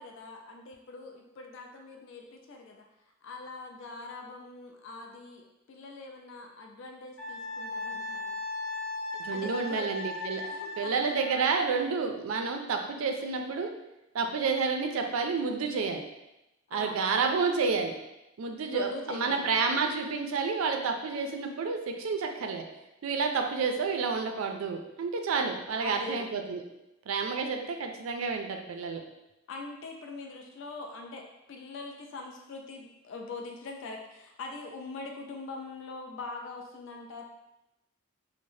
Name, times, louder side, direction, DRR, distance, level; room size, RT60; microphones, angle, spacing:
voice 1, 0.0-2.9 3.2-8.4 9.3-9.9 10.4-10.9 16.7-17.2 18.7-19.5 25.8-26.4 27.3-27.7 29.5-37.2, left 3 dB, 65° left, 2 dB, 0.3 m, -43 dB
Wind instrument woodwind instrument, 7.2-11.5, left 2 dB, 80° left, 0.9 m, -37 dB
voice 2, 9.2-10.4 10.8-13.7 14.1-16.0 16.7-17.9 18.4-22.6 23.0-26.6 27.1-29.0, right 5 dB, 90° right, 4 dB, 0.4 m, -30 dB
3.2 x 2.0 x 2.6 m, 0.93 s
head